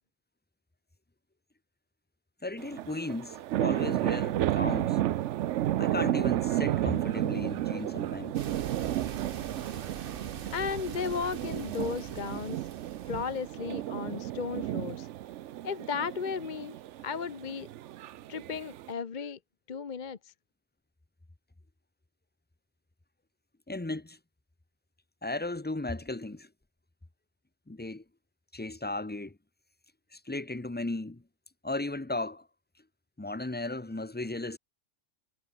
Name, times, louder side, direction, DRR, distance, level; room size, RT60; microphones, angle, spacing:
voice 1, 2.4-5.0 5.8-8.4 23.7-24.2 25.2-26.5 27.7-28.0 28.5-29.4 30.1-31.2 31.6-32.5 33.2-34.6, left 2 dB, 10° left, 0.8 m, -35 dB
sound 1, 2.6-18.9, right 13 dB, 85° right, 0.9 m, -32 dB
sound 2, 8.3-13.6, right 8 dB, 55° right, 1.0 m, -42 dB
voice 2, 10.5-12.6 13.1-15.1 15.6-16.8 17.0-17.7 18.3-19.4 19.7-20.3, left 6 dB, 45° left, 1.0 m, -35 dB
omnidirectional pair, 1.2 m